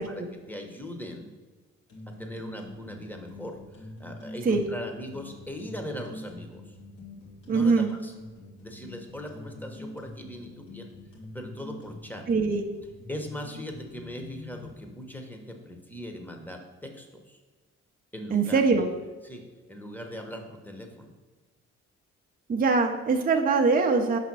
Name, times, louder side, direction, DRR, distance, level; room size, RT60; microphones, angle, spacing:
voice 1, 0.0-1.3 2.1-6.7 7.5-8.1 8.6-10.9 11.3-12.3 13.1-17.4 18.1-18.9 19.2-21.1, left 1 dB, 5° left, 3 dB, 1.0 m, -40 dB
sound 1, 1.9-14.7, left 2 dB, 90° left, 2.1 m, -45 dB
voice 2, 7.5-7.9 12.3-12.6 18.3-18.9 22.5-24.2, right 4 dB, 30° right, 3 dB, 0.6 m, -23 dB
5.6 x 4.1 x 6.0 m, 1.3 s
cardioid pair, 90°, 30 cm